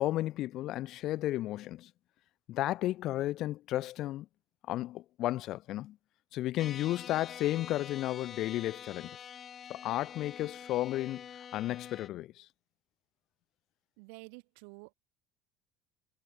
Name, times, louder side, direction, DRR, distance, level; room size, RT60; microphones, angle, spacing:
voice 1, 0.0-1.9 2.5-4.3 4.7-6.0 6.3-9.2 9.7-11.2 11.5-12.5, left 15 dB, 60° left, 0.9 m, -33 dB
sound 1, 6.6-12.1, left 8 dB, 40° left, 3.7 m, -46 dB
voice 2, 14.0-14.9, right 40 dB or more, 75° right, 3.5 m, -50 dB
hypercardioid pair, 75°, 0 cm